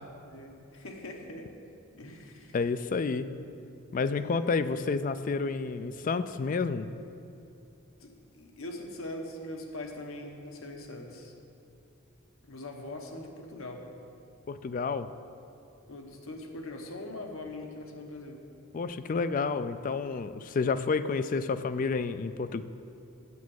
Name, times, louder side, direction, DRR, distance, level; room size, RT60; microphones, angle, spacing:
voice 1, 0.3-1.5 2.0-2.6 4.1-4.5 8.0-11.3 12.4-13.9 15.9-18.4, left 1 dB, 80° left, 3 dB, 1.1 m, -42 dB
voice 2, 2.5-3.3 3.9-6.9 14.5-15.1 18.7-22.6, left 4 dB, 40° left, 12 dB, 0.3 m, -30 dB
8.4 x 7.1 x 6.4 m, 2.6 s
head